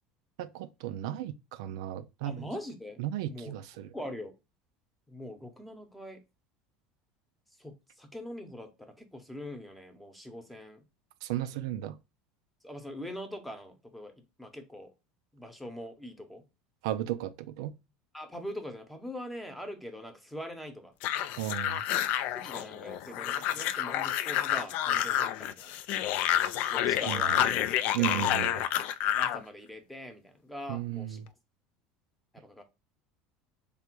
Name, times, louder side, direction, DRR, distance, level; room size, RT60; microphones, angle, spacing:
voice 1, 0.4-2.5 3.0-3.9 11.2-11.9 16.8-17.7 21.4-21.8 27.1-27.4 27.9-28.5 30.7-31.2, right 12 dB, 80° right, 0.4 m, -34 dB
voice 2, 2.3-3.0 3.3-3.5 3.9-4.4 5.1-6.2 7.6-10.8 12.6-14.9 15.3-16.4 18.1-20.9 22.3-25.8 26.7-28.5 29.1-31.2 32.3-32.6, left 1 dB, ahead, 0.8 m, -43 dB
sound 1, 21.0-29.4, left 11 dB, 60° left, 0.4 m, -29 dB
3.3 x 2.5 x 4.4 m
supercardioid pair, 115°, 3 cm